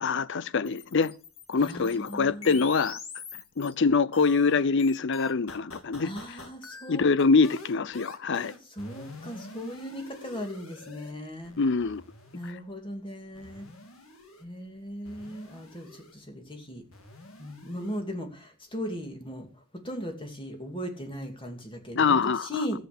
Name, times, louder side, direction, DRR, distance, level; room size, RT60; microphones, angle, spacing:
voice 1, 0.0-1.1 1.5-3.0 3.6-6.1 6.9-8.5 11.6-12.0 21.9-22.5, left 4 dB, 60° left, 0.6 m, -24 dB
sound 1, 0.7-3.7 4.1-11.1 11.4-12.5 13.3-14.4 15.0-16.1 16.9-18.0, left 3 dB, 85° left, 1.9 m, -45 dB
voice 2, 1.6-2.6 6.0-7.1 8.7-11.5 12.3-13.7 14.4-16.8 17.4-19.5 19.7-22.8, equal, 25° left, 2.5 m, -38 dB
13.5 x 8.1 x 6.8 m
head